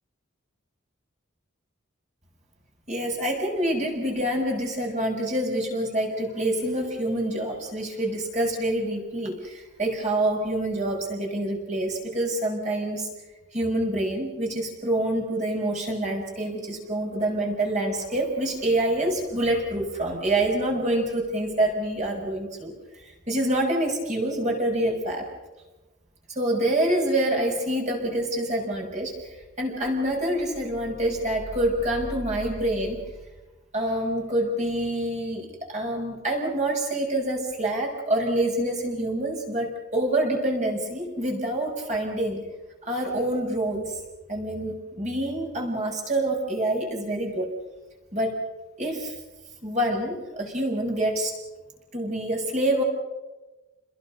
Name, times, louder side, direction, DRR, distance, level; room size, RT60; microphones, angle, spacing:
voice 1, 2.9-13.1 13.5-22.7 23.0-25.3 26.3-33.0 33.7-42.4 42.8-44.0 44.3-47.5 48.1-48.4 48.8-49.2 49.6-51.3 51.9-52.8, right 1 dB, 35° right, 0 dB, 6.4 m, -26 dB
29.5 x 22.0 x 5.5 m, 1.1 s
head